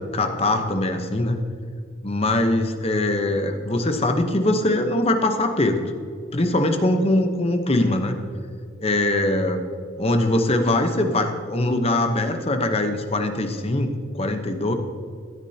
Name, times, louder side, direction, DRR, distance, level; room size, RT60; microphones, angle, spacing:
voice 1, 0.1-1.4 2.0-5.8 6.3-8.1 8.8-9.6 10.0-14.7, left 1 dB, 30° left, 6 dB, 0.9 m, -22 dB
16.0 x 9.8 x 2.8 m, 2.2 s
head